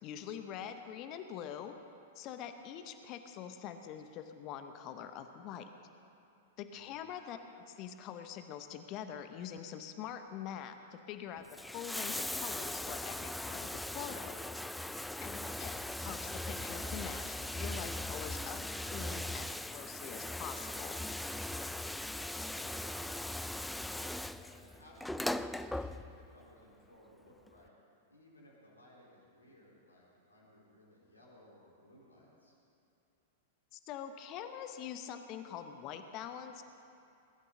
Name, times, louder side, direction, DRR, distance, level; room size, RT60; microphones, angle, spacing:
voice 1, 0.0-1.7 2.1-5.7 6.6-7.4 7.7-11.4 11.7-14.4 15.2-21.0 33.7-36.6, left 9 dB, 40° left, 8 dB, 0.9 m, -44 dB
voice 2, 6.7-7.2 21.8-27.7 28.1-32.6, left 1 dB, 80° left, -4 dB, 3.9 m, -61 dB
Bathtub (filling or washing), 11.4-26.4 27.5-27.6, left 1 dB, 5° left, 0.3 m, -39 dB
21.0 x 12.5 x 3.9 m, 2.7 s
figure-of-eight pair, 100°, 0 cm